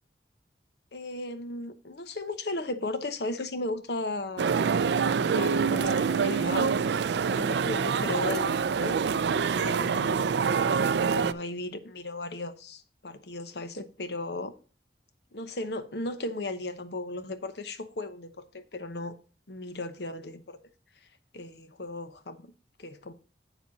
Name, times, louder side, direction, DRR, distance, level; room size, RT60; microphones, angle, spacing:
voice 1, 0.9-6.7 7.3-9.0 9.6-10.2 10.8-14.5 15.3-19.2 19.5-20.6 21.3-22.5 22.8-23.1, left 2 dB, 65° left, 0.9 m, -36 dB
sound 1, 4.4-11.3, right 6 dB, 70° right, 0.4 m, -26 dB
8.0 x 7.1 x 4.0 m
head